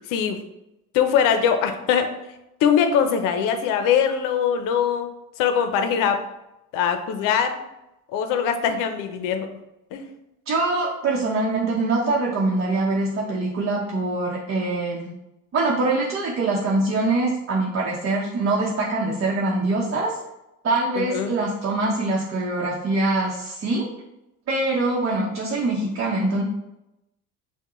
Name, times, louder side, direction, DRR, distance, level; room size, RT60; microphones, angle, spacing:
voice 1, 0.1-0.4 0.9-2.1 2.6-5.1 5.4-6.2 6.7-7.6 8.1-9.5 9.9-10.1 21.0-21.4, left 7 dB, 80° left, 7 dB, 0.6 m, -22 dB
voice 2, 10.5-15.1 15.5-20.2 20.6-23.9 24.5-26.4, right 2 dB, 45° right, -4 dB, 0.8 m, -23 dB
5.7 x 2.2 x 3.0 m, 0.90 s
cardioid pair, 105°, 32 cm